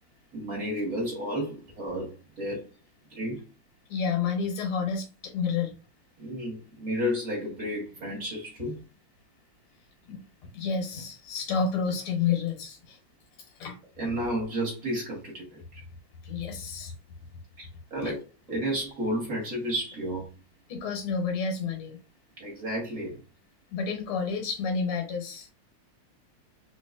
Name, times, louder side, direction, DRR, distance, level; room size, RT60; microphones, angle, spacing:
voice 1, 0.3-2.6 3.1-3.4 6.2-8.8 14.0-15.8 17.6-18.2 18.5-20.3 22.4-23.2, equal, 45° right, 1.4 m, -32 dB
voice 2, 3.9-5.7 10.1-10.2 10.5-13.0 13.6-13.8 16.2-16.9 18.0-18.1 20.7-22.0 23.7-25.5, left 5 dB, 80° left, 1.9 m, -30 dB
3.8 x 3.0 x 2.3 m
omnidirectional pair, 2.3 m